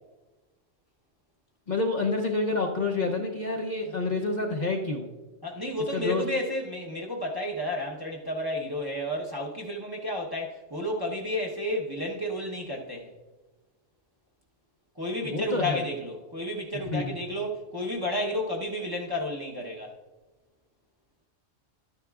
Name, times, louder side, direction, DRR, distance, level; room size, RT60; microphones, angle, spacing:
voice 1, 1.7-5.1 5.9-6.2 15.2-15.8 16.9-17.1, left 3 dB, 45° left, 0.7 m, -28 dB
voice 2, 5.4-13.1 15.0-19.9, left 1 dB, 20° right, 0.8 m, -31 dB
12.5 x 9.5 x 2.4 m
omnidirectional pair, 1.2 m